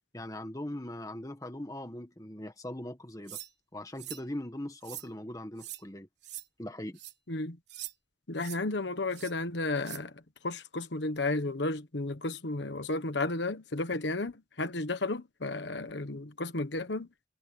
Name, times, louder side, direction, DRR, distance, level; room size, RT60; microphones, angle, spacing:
voice 1, 0.1-3.4 3.7-6.1 6.6-7.0, left 1 dB, 20° left, 1.5 m, -40 dB
sound 1, 3.3-3.5 4.0-4.3 4.8-5.1 5.6-5.8 6.2-6.4 7.0-7.1 7.7-7.9 8.4-8.6 9.1-9.3 9.8-10.0, right 14 dB, 65° right, 3.8 m, -43 dB
voice 2, 8.3-17.1, left 2 dB, 70° left, 1.2 m, -33 dB
head